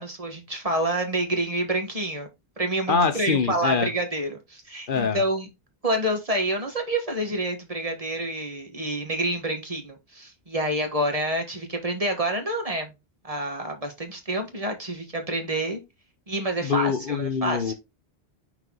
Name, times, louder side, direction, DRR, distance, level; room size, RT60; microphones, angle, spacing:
voice 1, 0.0-2.3 2.6-5.5 5.8-12.9 13.2-15.8 16.3-17.7, right 1 dB, 35° right, 1.5 m, -28 dB
voice 2, 2.9-3.9 4.9-5.2 16.6-17.7, left 5 dB, 60° left, 0.9 m, -24 dB
6.1 x 4.0 x 3.8 m
omnidirectional pair, 1.0 m